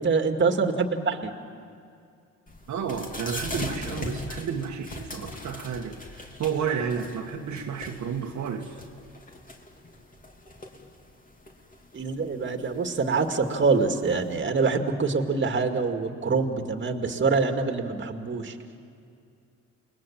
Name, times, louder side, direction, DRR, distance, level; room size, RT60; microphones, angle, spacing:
voice 1, 0.0-1.3 11.9-18.6, right 4 dB, 40° right, 5 dB, 2.2 m, -25 dB
sound 1, 2.5-14.3, left 1 dB, 25° left, 3.1 m, -41 dB
voice 2, 2.7-8.8, right 6 dB, 70° right, 1 dB, 1.7 m, -31 dB
28.5 x 20.5 x 7.5 m, 2.4 s
cardioid pair, 90°, 30 cm